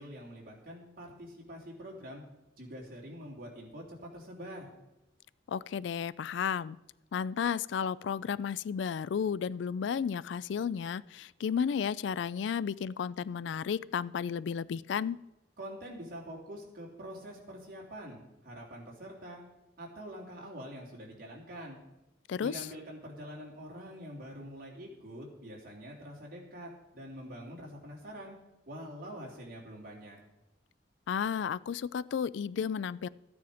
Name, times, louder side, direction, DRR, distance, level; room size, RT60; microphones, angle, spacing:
voice 1, 0.0-2.2 2.6-4.7 15.6-19.4 19.8-21.8 22.4-28.4 28.7-30.2, equal, 50° right, -2 dB, 3.1 m, -45 dB
voice 2, 5.5-6.8 7.1-15.2 22.3-22.7 31.1-33.1, left 7 dB, 65° left, 19 dB, 0.3 m, -33 dB
14.0 x 9.5 x 5.0 m, 0.96 s
head